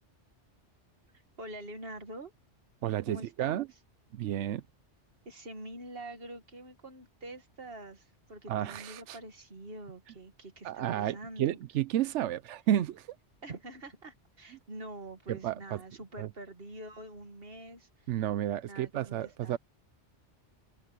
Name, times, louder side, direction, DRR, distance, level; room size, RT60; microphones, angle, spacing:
voice 1, 1.4-2.3 3.1-3.8 5.3-11.6 13.4-18.2 18.7-19.6, right 1 dB, 55° right, 2.2 m, -45 dB
voice 2, 2.8-3.7 4.1-4.6 8.5-9.2 10.6-13.1 15.3-15.5 16.2-16.3 18.1-19.6, right 12 dB, 90° right, 0.9 m, -31 dB
omnidirectional pair, 1.2 m